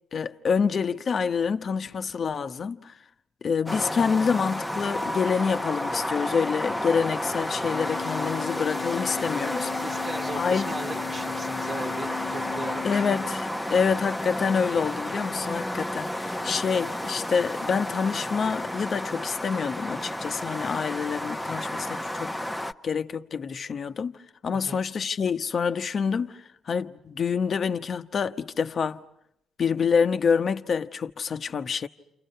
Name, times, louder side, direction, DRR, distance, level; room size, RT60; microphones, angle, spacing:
voice 1, 0.1-2.9 3.4-9.7 10.3-10.7 12.8-13.4 13.7-22.3 22.8-24.2 24.4-29.0 29.6-31.9, left 6 dB, 50° left, 1.0 m, -27 dB
sound 1, 3.7-22.7, left 1 dB, 5° left, 1.0 m, -31 dB
Organ, 7.7-13.7, left 12 dB, 85° left, 1.0 m, -37 dB
voice 2, 9.7-13.2 24.7-24.8, right 3 dB, 35° right, 1.6 m, -38 dB
30.0 x 28.0 x 5.6 m
cardioid pair, 90°, 0 cm